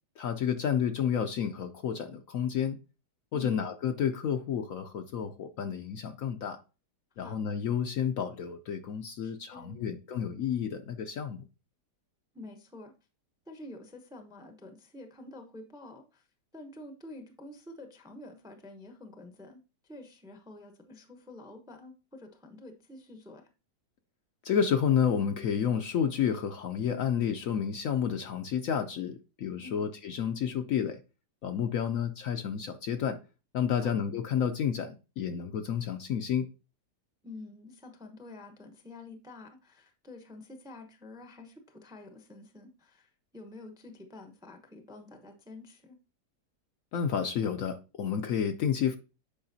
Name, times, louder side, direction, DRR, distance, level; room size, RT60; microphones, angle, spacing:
voice 1, 0.2-2.8 3.3-6.6 7.2-11.4 24.4-31.0 31.4-33.2 33.5-36.5 46.9-49.0, left 8 dB, 65° left, 0.9 m, -30 dB
voice 2, 9.2-9.9 12.3-12.9 13.5-16.3 16.5-23.5 29.6-29.8 33.7-33.9 37.2-46.0, left 2 dB, 5° right, 0.5 m, -48 dB
8.6 x 5.1 x 2.7 m
omnidirectional pair, 1.8 m